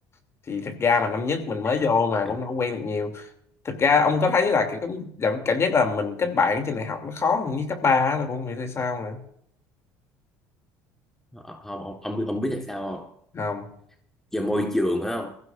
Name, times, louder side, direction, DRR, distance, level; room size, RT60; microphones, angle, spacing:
voice 1, 0.5-3.3 3.6-9.2 13.3-13.7, left 4 dB, 35° left, 2.8 m, -24 dB
voice 2, 11.3-13.1 14.3-15.4, left 1 dB, 5° left, 1.5 m, -28 dB
23.0 x 15.0 x 2.6 m
supercardioid pair, 80°, 8 cm